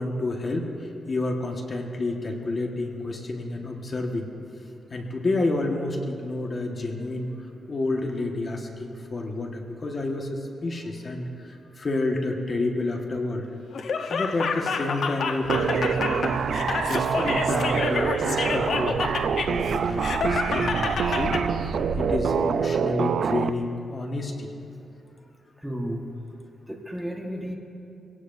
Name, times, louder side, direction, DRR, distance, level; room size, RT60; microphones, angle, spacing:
voice 1, 0.0-4.3 4.9-7.3 7.7-13.5 14.1-16.4 16.8-21.3 22.0-24.5, left 2 dB, 35° left, 1 dB, 1.5 m, -29 dB
Laughter, 13.7-21.4, left 5 dB, 70° left, 1.0 m, -29 dB
sound 1, 15.4-22.2, right 3 dB, 45° right, 1.8 m, -36 dB
sound 2, 15.5-23.5, right 6 dB, 65° right, 0.4 m, -26 dB
voice 2, 25.6-26.0 26.7-27.5, equal, 5° right, 0 dB, 1.4 m, -32 dB
24.0 x 17.5 x 2.7 m, 2.8 s
cardioid pair, 120°, 0 cm